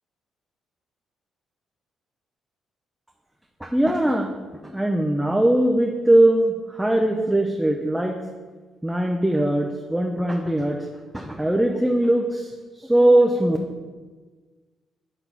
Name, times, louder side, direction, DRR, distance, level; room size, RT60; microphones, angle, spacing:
voice 1, 3.6-4.3 4.6-8.2 8.8-10.9 11.1-12.5 12.8-13.6, right 1 dB, 5° right, 1 dB, 0.6 m, -20 dB
8.0 x 3.4 x 5.8 m, 1.4 s
cardioid pair, 90°, 0 cm